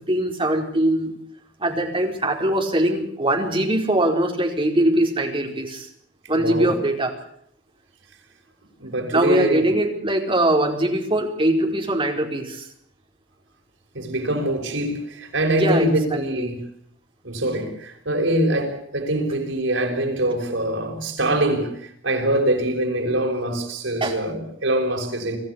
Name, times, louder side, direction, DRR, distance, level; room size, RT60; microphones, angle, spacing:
voice 1, 0.1-1.1 1.6-5.9 6.3-7.1 9.1-12.7 15.5-16.4 24.0-24.2, right 1 dB, 30° right, 4.6 m, -22 dB
voice 2, 6.3-6.7 8.8-9.7 13.9-16.6 17.2-25.4, right 1 dB, 90° right, 6.4 m, -24 dB
25.5 x 15.0 x 8.3 m
head